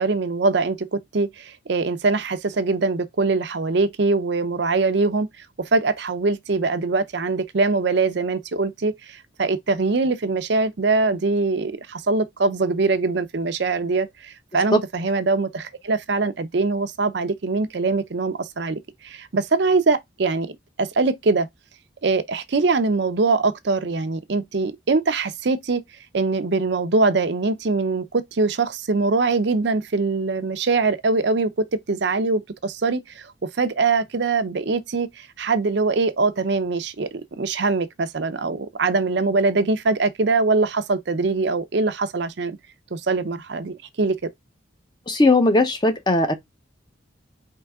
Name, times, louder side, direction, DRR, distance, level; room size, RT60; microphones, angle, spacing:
voice 1, 0.0-5.3 5.6-21.5 22.0-25.8 26.1-42.6 42.9-44.2, right 3 dB, 60° right, 0.6 m, -23 dB
voice 2, 45.1-46.3, left 2 dB, 20° left, 0.7 m, -18 dB
4.6 x 3.2 x 3.5 m
head